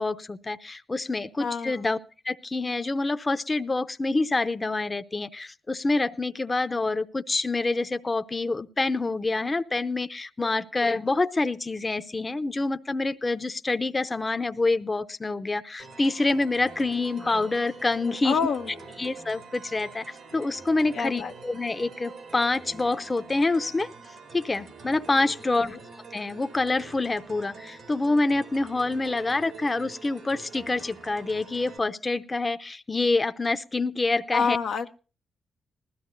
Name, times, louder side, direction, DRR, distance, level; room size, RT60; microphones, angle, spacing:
voice 1, 0.0-2.0 2.2-18.4 19.0-23.9 24.3-25.8 26.1-34.6, left 3 dB, 30° left, 10 dB, 0.7 m, -27 dB
voice 2, 1.4-1.8 18.2-18.7 20.9-21.3 34.3-34.9, left 6 dB, 75° left, 4 dB, 0.7 m, -27 dB
sound 1, 15.8-31.8, right 4 dB, 75° right, 2.0 m, -45 dB
20.0 x 13.5 x 2.6 m, 0.35 s
supercardioid pair, 45°, 0 cm